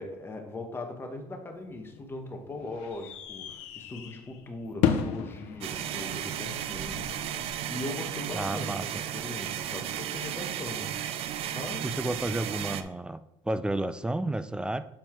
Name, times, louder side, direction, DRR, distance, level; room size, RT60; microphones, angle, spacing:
voice 1, 0.0-10.9 11.5-12.0, left 2 dB, 20° left, 3 dB, 1.3 m, -40 dB
sound 1, 1.5-7.5, left 8 dB, 80° left, 0.7 m, -34 dB
sound 2, 5.6-12.8, right 11 dB, 60° right, 0.5 m, -34 dB
voice 2, 8.3-8.9 11.8-13.2 13.4-14.9, right 1 dB, 10° right, 13 dB, 0.4 m, -31 dB
7.4 x 4.4 x 4.5 m, 0.84 s
cardioid pair, 110°, 11 cm